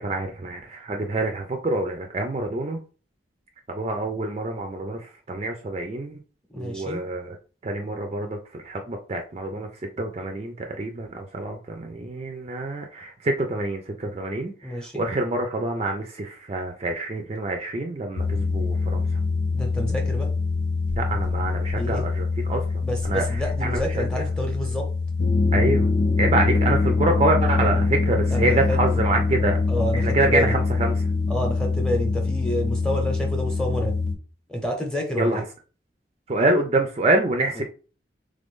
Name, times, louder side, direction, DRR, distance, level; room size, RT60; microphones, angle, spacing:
voice 1, 0.0-2.8 3.7-5.0 5.3-6.2 6.6-7.3 7.6-9.7 10.0-19.0 21.0-22.6 23.0-23.2 23.6-23.8 25.5-25.9 26.2-29.6 29.9-30.9 35.2-35.4 36.3-37.6, right 2 dB, 35° right, 4 dB, 0.4 m, -26 dB
voice 2, 6.5-7.0 14.6-15.0 19.5-20.3 21.8-22.1 22.8-24.9 28.3-28.8 29.7-30.5 31.3-34.0 34.5-35.4 37.5-37.6, equal, 5° left, 0 dB, 0.8 m, -29 dB
sound 1, 18.2-34.1, left 3 dB, 75° left, 0.7 m, -24 dB
3.3 x 2.5 x 3.6 m, 0.36 s
head